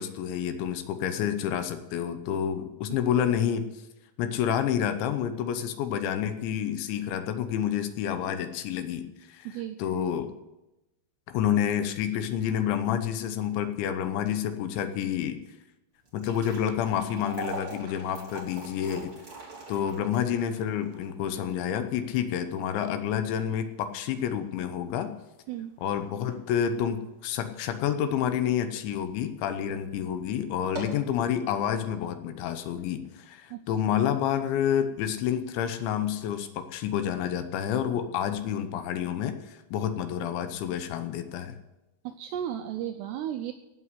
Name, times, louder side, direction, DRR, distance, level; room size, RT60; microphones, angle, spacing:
voice 1, 0.0-3.7 4.2-9.5 9.8-10.3 11.3-15.4 16.1-19.2 19.7-25.1 25.8-41.6, left 9 dB, 75° left, 9 dB, 3.1 m, -29 dB
voice 2, 9.5-9.8 25.5-25.7 33.5-33.7 42.0-43.5, right 10 dB, 85° right, 6 dB, 2.4 m, -34 dB
sound 1, 16.0-28.3 28.7-28.8 29.5-29.7 30.0-30.1 30.5-31.1, right 1 dB, 30° right, 3.8 m, -44 dB
16.5 x 5.6 x 9.6 m, 0.97 s
omnidirectional pair, 5.6 m